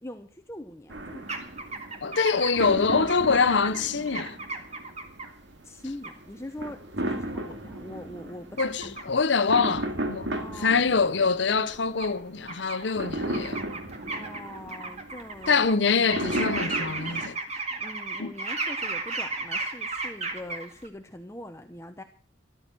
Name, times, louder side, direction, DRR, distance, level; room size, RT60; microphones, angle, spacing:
voice 1, 0.0-1.5 5.6-9.2 10.4-10.9 14.1-16.3 17.7-22.0, left 1 dB, 15° left, 0.6 m, -42 dB
sound 1, 0.9-17.3, right 1 dB, 65° right, 2.1 m, -35 dB
sound 2, 1.3-5.3 6.0-6.1 8.6-9.0 9.5-9.6 11.0-11.1 12.0-12.1 12.5-12.9 13.2-15.7 16.1-20.9, right 3 dB, 35° right, 1.9 m, -34 dB
voice 2, 2.0-4.4 8.6-10.3 10.6-13.6 15.5-17.4 18.2-18.3, left 5 dB, 70° left, 0.8 m, -24 dB
13.5 x 12.5 x 6.0 m
head